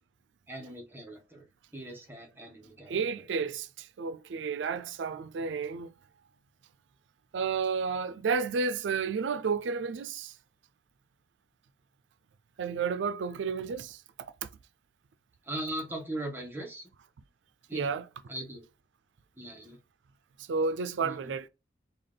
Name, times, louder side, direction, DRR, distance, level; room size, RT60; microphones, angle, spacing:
voice 1, 0.5-1.5 1.7-3.3 15.5-16.9 17.7-17.9 18.3-18.6 19.4-19.8 21.0-21.4, right 1 dB, 10° right, 0.8 m, -39 dB
voice 2, 2.9-5.9 7.3-10.3 12.6-14.0 17.7-18.0 20.5-21.5, right 5 dB, 90° right, 0.4 m, -31 dB
3.4 x 2.4 x 3.7 m
head